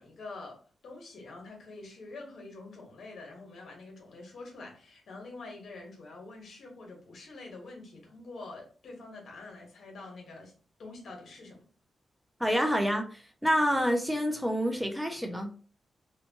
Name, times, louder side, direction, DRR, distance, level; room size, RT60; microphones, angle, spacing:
voice 1, 0.0-10.5 10.8-11.6, left 3 dB, 70° left, 1.0 m, -46 dB
voice 2, 12.4-15.5, equal, 5° right, 0.4 m, -28 dB
2.8 x 2.2 x 2.7 m
wide cardioid pair, 130°, 0 cm